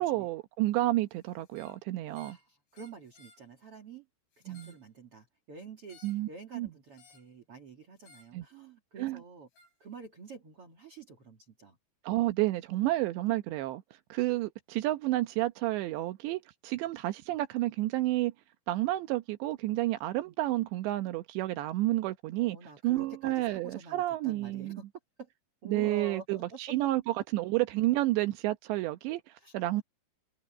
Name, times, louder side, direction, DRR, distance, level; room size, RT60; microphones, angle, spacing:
voice 1, 0.0-2.4 4.5-4.7 6.0-6.3 6.5-6.7 8.3-8.5 9.0-9.2 12.0-13.8 14.1-18.3 18.7-22.6 22.8-24.8 25.7-29.8, right 17 dB, 85° right, 3.2 m, -30 dB
sound 1, 1.4-1.8 2.1-2.4 2.7-3.4 4.3-4.9 5.9-6.3 7.0-7.3 8.0-8.3 9.5-9.7, left 3 dB, 90° left, 7.1 m, -59 dB
voice 2, 2.2-4.1 4.4-9.5 9.8-11.8 22.4-24.9 25.2-25.3 25.6-26.6 29.4-29.5, right 4 dB, 40° right, 2.4 m, -48 dB
omnidirectional pair, 5.0 m